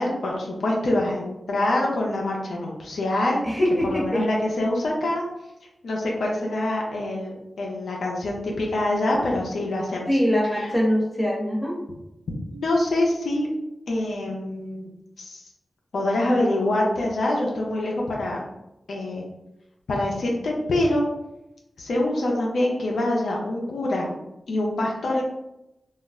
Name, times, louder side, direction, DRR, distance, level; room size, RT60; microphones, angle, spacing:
voice 1, 0.0-3.4 3.8-5.2 5.8-10.0 10.5-10.7 12.4-13.5 13.9-14.9 15.2-15.4 15.9-18.4 18.9-19.2 19.9-21.0 21.8-24.1 24.5-25.2, left 1 dB, 85° left, -2 dB, 0.5 m, -25 dB
voice 2, 3.4-4.2 10.1-11.8, equal, 5° left, -4 dB, 1.1 m, -23 dB
2.3 x 2.0 x 3.5 m, 0.91 s
cardioid pair, 45°, 0 cm